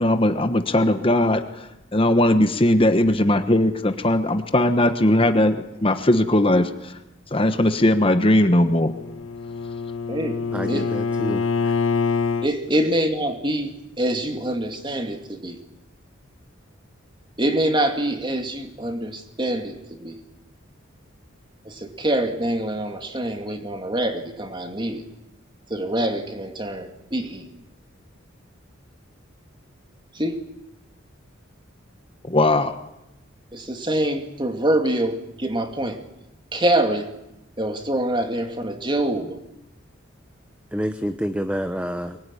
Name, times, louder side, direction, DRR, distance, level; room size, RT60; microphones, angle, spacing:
voice 1, 0.0-6.9 7.3-8.9 32.3-32.7, left 1 dB, 25° left, 8 dB, 1.2 m, -19 dB
Bowed string instrument, 8.7-12.5, left 4 dB, 85° left, 1.3 m, -25 dB
voice 2, 10.5-11.7 40.7-42.2, equal, 5° right, 9 dB, 0.9 m, -28 dB
voice 3, 12.4-15.6 17.4-20.1 21.7-25.0 25.7-27.4 30.2-30.4 33.5-36.0 36.5-37.1 37.6-39.3, right 1 dB, 25° right, 5 dB, 2.5 m, -25 dB
23.5 x 21.0 x 10.0 m, 0.91 s
head